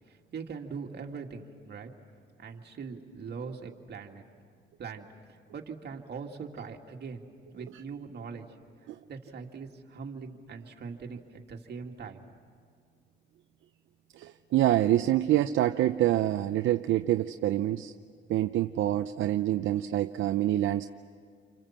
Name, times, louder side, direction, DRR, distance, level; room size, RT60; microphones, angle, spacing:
voice 1, 0.1-1.9 2.4-4.2 4.8-8.5 9.1-12.2, right 5 dB, 55° right, 2 dB, 2.4 m, -41 dB
voice 2, 14.2-17.9 18.3-20.9, right 13 dB, 75° right, 8 dB, 0.7 m, -26 dB
29.5 x 25.5 x 7.4 m, 2.1 s
cardioid pair, 90°, 20 cm